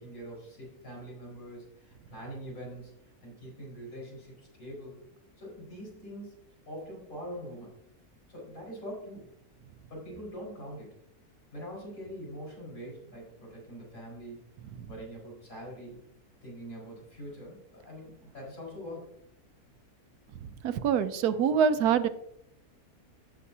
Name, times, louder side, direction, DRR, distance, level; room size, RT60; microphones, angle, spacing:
voice 1, 0.0-5.0 5.4-6.4 6.7-7.8 8.3-9.3 9.9-11.0 11.5-14.4 14.9-16.0 16.4-19.1, equal, 60° left, -4 dB, 5.2 m, -43 dB
voice 2, 20.4-22.1, right 7 dB, 85° right, 12 dB, 1.2 m, -25 dB
16.0 x 7.0 x 2.8 m, 0.76 s
omnidirectional pair, 1.6 m